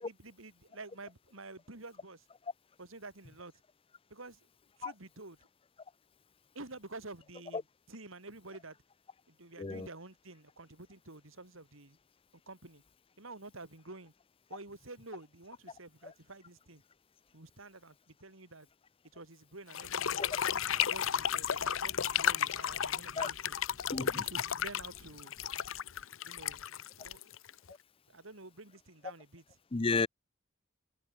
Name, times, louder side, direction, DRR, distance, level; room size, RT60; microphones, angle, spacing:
voice 1, 0.0-2.3 2.8-3.5 4.1-4.5 4.8-5.4 6.6-8.8 9.3-12.0 12.5-12.8 13.2-14.1 14.5-16.8 17.3-18.7 19.1-20.3 20.7-23.6 24.0-25.4 26.3-26.7 27.0-27.2 28.1-29.6, right 2 dB, 75° right, 3.3 m, -50 dB
sound 1, 19.7-27.7, left 9 dB, 70° left, 0.7 m, -33 dB
voice 2, 23.9-24.2 29.7-30.1, left 4 dB, 25° left, 0.5 m, -32 dB
head